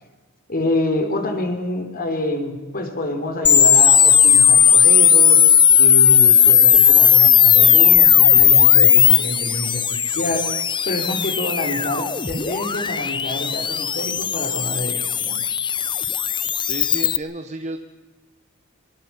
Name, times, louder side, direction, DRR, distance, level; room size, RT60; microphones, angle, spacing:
voice 1, 0.5-5.4 5.8-10.5 10.9-15.4, left 1 dB, 45° left, 6 dB, 3.6 m, -27 dB
sound 1, 3.4-17.2, left 8 dB, 20° left, 0.7 m, -15 dB
voice 2, 16.6-17.8, right 2 dB, 35° right, 6 dB, 1.3 m, -31 dB
24.0 x 24.0 x 5.8 m, 1.3 s
head